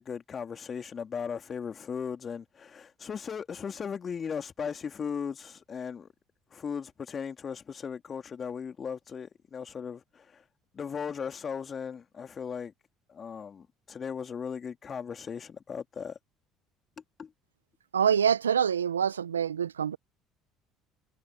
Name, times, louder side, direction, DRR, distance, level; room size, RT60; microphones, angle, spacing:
voice 1, 0.0-6.1 6.5-10.5 10.7-12.7 13.1-16.2 17.2-17.3, left 6 dB, 35° left, 2.6 m, -37 dB
voice 2, 17.9-20.0, right 8 dB, 85° right, 0.9 m, -25 dB
hypercardioid pair, 60°, 0 cm